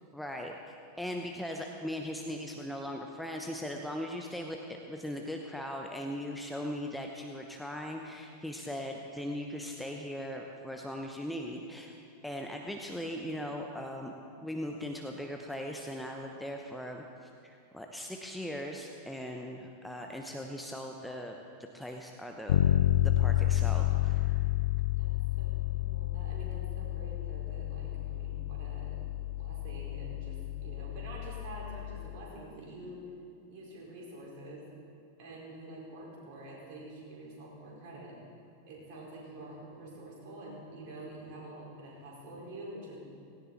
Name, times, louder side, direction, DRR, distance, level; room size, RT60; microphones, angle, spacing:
voice 1, 0.1-0.6 1.0-11.9 12.2-14.1 14.4-21.4 21.7-22.6 23.0-24.4, equal, ahead, 2 dB, 1.0 m, -39 dB
Bass guitar, 22.5-32.2, left 13 dB, 60° left, 0.5 m, -30 dB
voice 2, 25.0-29.0 29.4-33.0 33.5-34.6 35.2-38.1 38.7-43.0, right 1 dB, 45° right, -4 dB, 5.0 m, -47 dB
17.5 x 17.0 x 4.3 m, 2.5 s
figure-of-eight pair, 90°, 0 cm